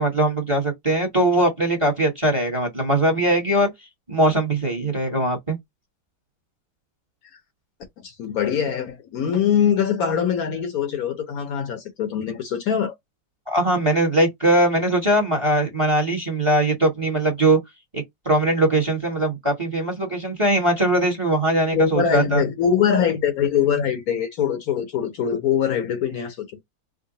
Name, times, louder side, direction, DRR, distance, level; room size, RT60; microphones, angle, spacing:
voice 1, 0.0-3.7 4.1-5.6 13.5-17.6 17.9-22.4, right 1 dB, 20° right, 1.0 m, -21 dB
voice 2, 8.0-12.9 21.7-26.4, left 8 dB, 65° left, 1.1 m, -22 dB
3.7 x 2.1 x 3.8 m
omnidirectional pair, 1.9 m